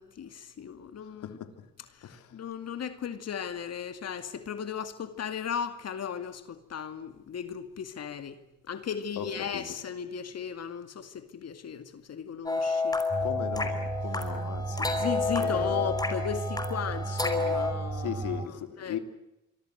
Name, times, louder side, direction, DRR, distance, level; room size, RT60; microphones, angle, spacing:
voice 1, 0.0-1.4 1.9-8.4 8.7-13.0 14.9-18.1 18.8-19.0, left 7 dB, 55° left, 2.3 m, -36 dB
voice 2, 1.2-1.7 2.0-2.3 9.2-9.7 13.2-15.1 15.3-15.8 17.9-19.0, left 9 dB, 80° left, 3.4 m, -38 dB
sound 1, 12.5-17.7, left 3 dB, 15° left, 4.9 m, -30 dB
sound 2, 13.1-18.5, right 3 dB, 20° right, 2.2 m, -34 dB
27.0 x 24.0 x 8.0 m
cardioid pair, 90°, 30 cm